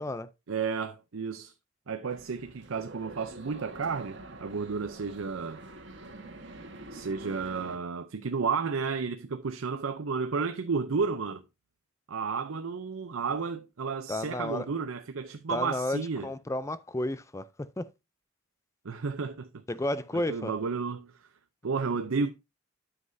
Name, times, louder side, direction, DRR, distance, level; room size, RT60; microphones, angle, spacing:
voice 1, 0.5-1.5 1.9-5.6 6.9-11.4 12.1-16.3 18.8-19.6 20.1-21.1 21.6-22.3, right 5 dB, 80° right, 0.6 m, -32 dB
sound 1, 2.1-7.8, right 2 dB, 60° right, 1.4 m, -46 dB
voice 2, 14.1-14.7 15.5-17.9 19.7-20.5, left 1 dB, 15° left, 0.4 m, -32 dB
9.4 x 7.7 x 2.6 m
head